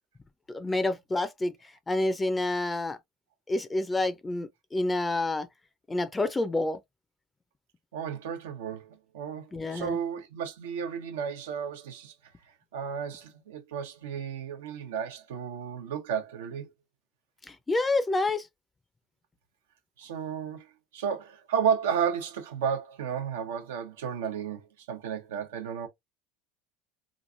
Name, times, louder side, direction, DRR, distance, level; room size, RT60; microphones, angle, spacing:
voice 1, 0.5-1.5 1.9-3.0 3.5-5.5 5.9-6.8 9.5-10.0 17.5-18.5, left 2 dB, 15° left, 0.5 m, -28 dB
voice 2, 7.9-12.1 12.7-16.7 20.0-20.7 20.9-24.6 24.9-25.9, right 7 dB, 90° right, 0.7 m, -32 dB
3.0 x 2.5 x 2.5 m
supercardioid pair, 95°, 0 cm